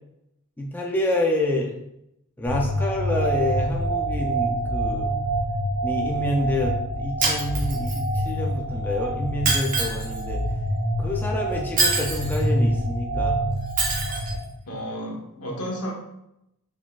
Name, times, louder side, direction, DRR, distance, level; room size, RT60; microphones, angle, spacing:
voice 1, 0.6-1.8 2.4-5.1 5.8-10.4 11.0-13.5, left 1 dB, 10° left, -1 dB, 0.4 m, -27 dB
sound 1, 2.5-14.3, right 1 dB, 10° right, 1.0 m, -26 dB
Shatter, 7.2-8.2 9.4-10.2 11.8-12.4 13.8-14.3, right 4 dB, 40° right, 0.9 m, -25 dB
voice 2, 14.7-15.9, equal, 80° left, -2 dB, 1.2 m, -32 dB
4.7 x 3.7 x 2.4 m, 0.82 s
head